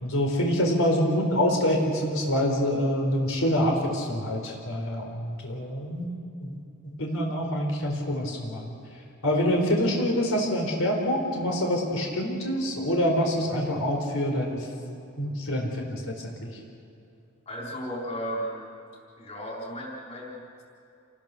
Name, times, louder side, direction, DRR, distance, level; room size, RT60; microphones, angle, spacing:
voice 1, 0.0-6.1 6.4-6.6 6.8-8.7 9.2-14.7 15.2-16.5, equal, 90° left, 1 dB, 4.3 m, -26 dB
voice 2, 17.5-18.7 19.2-20.6, equal, 30° left, -3 dB, 4.3 m, -35 dB
28.5 x 19.0 x 6.9 m, 2.6 s
head